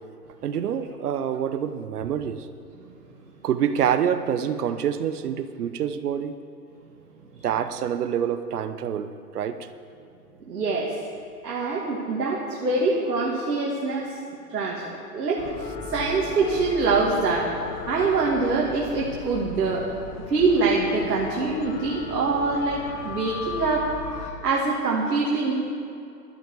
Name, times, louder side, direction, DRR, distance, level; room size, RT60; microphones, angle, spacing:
voice 1, 0.4-2.5 3.4-6.3 7.4-9.7, right 8 dB, 70° right, 11 dB, 1.0 m, -26 dB
voice 2, 10.4-11.0 11.4-14.2 14.5-15.5 15.9-17.5 17.9-19.9 20.3-23.9 24.2-25.5, right 3 dB, 90° right, -3 dB, 2.4 m, -24 dB
sound 1, 15.4-24.3, left 5 dB, 20° left, 0.7 m, -37 dB
13.5 x 12.0 x 4.8 m, 2.6 s
hypercardioid pair, 145°, 47 cm